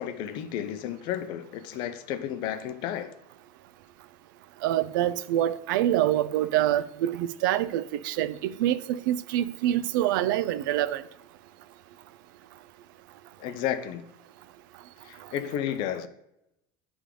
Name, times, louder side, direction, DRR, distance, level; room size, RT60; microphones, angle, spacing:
voice 1, 0.0-3.1 13.4-14.1 15.1-16.1, left 10 dB, 45° left, 0.6 m, -32 dB
voice 2, 4.6-11.0, right 12 dB, 80° right, 0.4 m, -26 dB
9.8 x 3.5 x 3.7 m
supercardioid pair, 160°, 11 cm